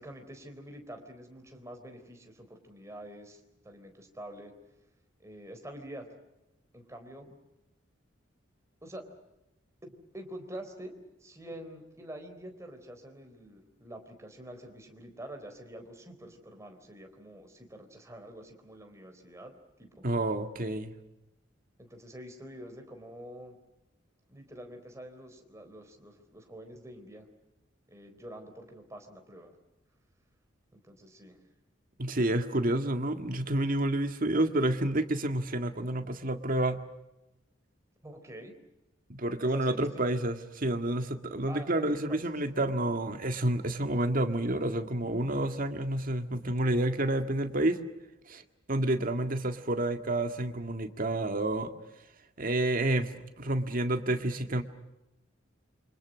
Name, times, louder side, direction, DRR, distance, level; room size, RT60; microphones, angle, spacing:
voice 1, 0.0-4.5 5.2-6.1 6.7-7.4 8.8-9.1 9.8-10.9 11.2-20.0 21.8-23.6 24.3-27.3 27.9-29.5 30.7-31.4 38.0-38.5 39.4-40.2 41.5-42.3, right 1 dB, 15° right, 4 dB, 4.0 m, -46 dB
voice 2, 20.0-20.9 32.0-36.8 39.1-47.8 48.3-48.4 48.7-51.7 52.4-54.6, right 1 dB, 45° right, 7 dB, 1.9 m, -29 dB
28.0 x 25.5 x 6.3 m, 0.96 s
head